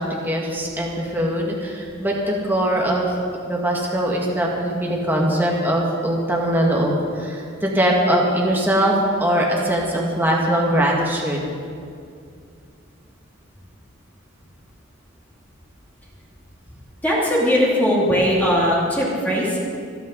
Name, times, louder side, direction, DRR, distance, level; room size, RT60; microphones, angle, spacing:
voice 1, 0.0-3.1 3.5-11.4, right 1 dB, 10° right, -2 dB, 1.8 m, -21 dB
voice 2, 17.0-19.6, equal, 10° left, -5 dB, 2.7 m, -19 dB
26.0 x 9.1 x 3.9 m, 2.3 s
head